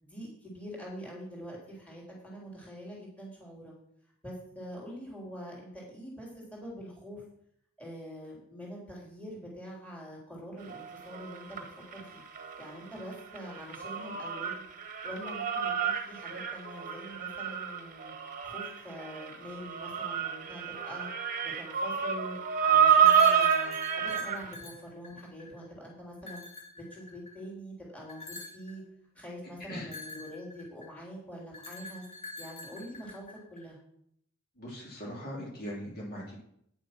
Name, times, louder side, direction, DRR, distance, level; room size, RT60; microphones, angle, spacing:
voice 1, 0.0-3.7 4.2-7.2 7.8-11.6 11.9-12.2 12.6-14.6 15.0-18.1 18.4-21.1 21.4-26.4 26.8-28.8 29.2-32.0 32.4-33.8, equal, 5° left, -3 dB, 3.8 m, -44 dB
sound 1, 10.7-12.7 13.0-24.5, right 7 dB, 40° right, 1.2 m, -29 dB
sound 2, 23.0-25.6 26.2-27.4 28.1-28.7 29.8-31.0 31.5-33.6, left 2 dB, 30° left, 2.4 m, -45 dB
voice 2, 34.6-36.4, equal, 45° left, -3 dB, 3.2 m, -40 dB
9.8 x 7.3 x 6.0 m, 0.70 s
head